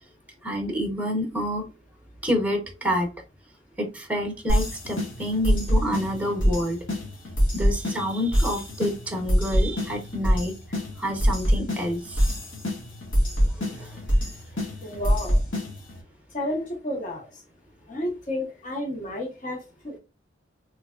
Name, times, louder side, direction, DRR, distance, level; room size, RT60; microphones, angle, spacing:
voice 1, 0.4-1.6 2.2-3.1 3.8-6.8 7.5-12.3 13.6-14.0, equal, 5° right, 3 dB, 0.9 m, -28 dB
sound 1, 4.5-16.0, equal, 85° left, 1.3 m, -25 dB
voice 2, 14.8-15.4 16.3-17.3 17.9-20.0, left 1 dB, 40° left, 0 dB, 0.9 m, -31 dB
3.3 x 3.3 x 2.3 m, 0.30 s
head